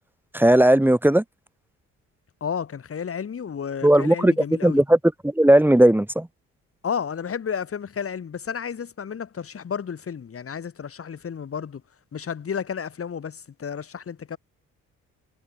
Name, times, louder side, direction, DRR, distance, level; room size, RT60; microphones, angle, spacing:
voice 1, 0.3-1.2 3.8-4.3 4.6-5.0 5.2-6.3, right 1 dB, 5° right, 4.0 m, -16 dB
voice 2, 2.4-4.8 6.8-11.8 12.1-14.4, left 7 dB, 50° left, 6.7 m, -32 dB
cardioid pair, 90°, 30 cm